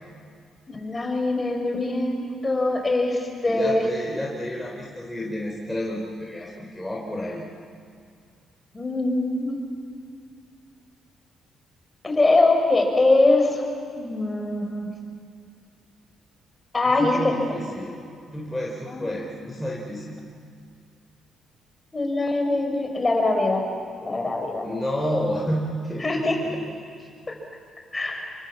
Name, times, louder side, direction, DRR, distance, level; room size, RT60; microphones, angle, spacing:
voice 1, 0.7-3.9 8.7-9.6 12.0-13.6 14.0-14.9 16.7-17.3 18.9-19.1 21.9-23.6 24.0-24.7 26.0-26.4 27.3-27.4 27.9-28.3, left 2 dB, 20° left, 2 dB, 5.8 m, -22 dB
voice 2, 3.4-7.4 17.0-18.0 18.3-20.2 24.6-26.5, equal, 5° left, -3 dB, 4.2 m, -30 dB
27.0 x 23.5 x 7.5 m, 2.3 s
cardioid pair, 90°, 0 cm